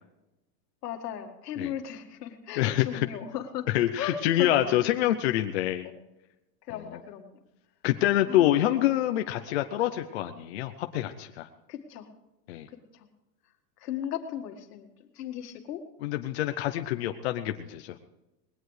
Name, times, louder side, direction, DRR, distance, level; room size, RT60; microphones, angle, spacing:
voice 1, 0.8-3.7 4.0-4.8 5.8-6.0 6.7-7.4 8.3-8.8 11.7-12.1 12.7-13.1 13.8-15.8 16.9-17.2, left 9 dB, 70° left, 6 dB, 1.9 m, -37 dB
voice 2, 2.6-3.1 3.7-5.9 7.8-11.5 12.5-12.7 16.0-18.0, left 13 dB, 45° left, 7 dB, 0.6 m, -26 dB
20.5 x 17.0 x 3.2 m, 0.98 s
supercardioid pair, 175°, 49 cm